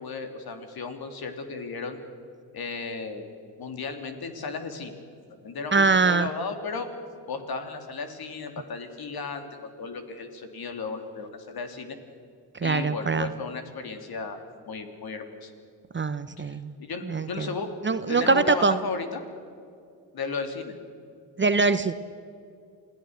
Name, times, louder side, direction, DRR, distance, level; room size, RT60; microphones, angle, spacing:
voice 1, 0.0-2.0 2.5-3.3 3.6-4.9 5.4-6.9 7.3-12.0 12.6-15.5 16.4-17.7 18.1-19.2 20.1-20.7, left 4 dB, 50° left, 7 dB, 3.3 m, -35 dB
voice 2, 5.7-6.3 12.5-13.3 15.9-16.7 17.0-17.5 17.8-18.8 21.4-21.9, right 4 dB, 25° right, 12 dB, 1.0 m, -23 dB
27.5 x 17.5 x 6.6 m, 2.4 s
hypercardioid pair, 60°, 46 cm